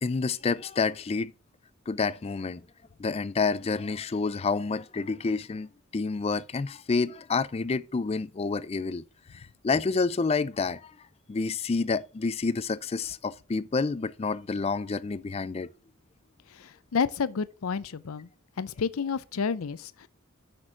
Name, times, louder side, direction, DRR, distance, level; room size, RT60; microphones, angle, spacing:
voice 1, 0.0-1.3 1.9-2.6 3.0-9.0 9.3-10.9 11.3-15.7, left 4 dB, 30° left, 0.4 m, -29 dB
voice 2, 16.5-18.3 18.6-20.1, left 5 dB, 85° left, 0.5 m, -30 dB
6.2 x 6.1 x 5.6 m
head